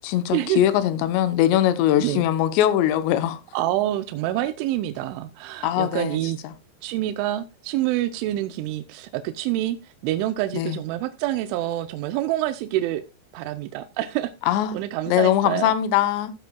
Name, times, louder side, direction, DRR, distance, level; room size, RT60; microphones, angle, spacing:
voice 1, 0.0-3.4 5.6-6.2 10.5-10.8 14.5-14.7 15.1-16.3, left 11 dB, 75° left, 2.7 m, -21 dB
voice 2, 3.5-6.4 6.8-13.0 13.3-14.3 14.7-15.7, right 14 dB, 80° right, 2.9 m, -27 dB
16.0 x 8.0 x 2.3 m
omnidirectional pair, 5.8 m